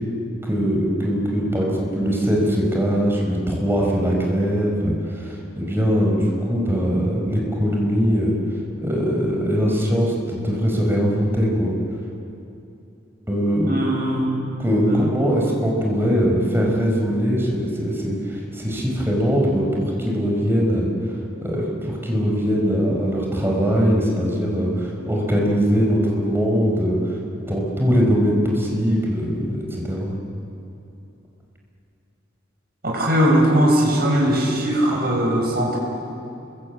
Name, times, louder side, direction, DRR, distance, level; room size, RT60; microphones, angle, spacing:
voice 1, 0.4-8.3 8.8-11.7 13.3-13.8 14.6-20.9 21.4-27.1 27.5-30.1, equal, 10° right, -1 dB, 5.1 m, -21 dB
voice 2, 13.6-14.3 14.9-15.1 32.8-35.8, equal, 55° right, -1 dB, 6.8 m, -19 dB
29.5 x 23.0 x 8.7 m, 2.8 s
head